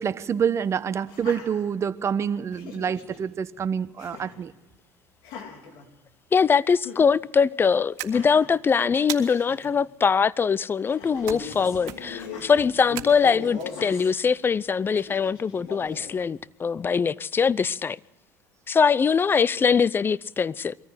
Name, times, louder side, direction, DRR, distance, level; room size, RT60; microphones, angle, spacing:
voice 1, 0.0-4.5, right 7 dB, 40° right, 1.0 m, -27 dB
Laughter, 1.0-2.1 2.5-3.2 4.0-4.5 5.2-6.4 6.8-7.1 8.0-8.6 9.1-9.2 9.3-9.7 10.9-11.4 12.2-12.5 13.6-14.1 14.9-15.5, left 7 dB, 70° left, 3.8 m, -44 dB
voice 2, 6.3-18.0 18.7-20.8, left 6 dB, 30° left, 0.6 m, -22 dB
sound 1, 8.0-8.6 9.1-9.7 11.3-11.6 11.8-12.3 13.0-13.6, right 13 dB, 75° right, 1.8 m, -36 dB
Male speech man speaking, 11.0-14.2 15.5-16.2, left 4 dB, 90° left, 7.3 m, -38 dB
23.0 x 14.5 x 7.9 m
hypercardioid pair, 80°, 8 cm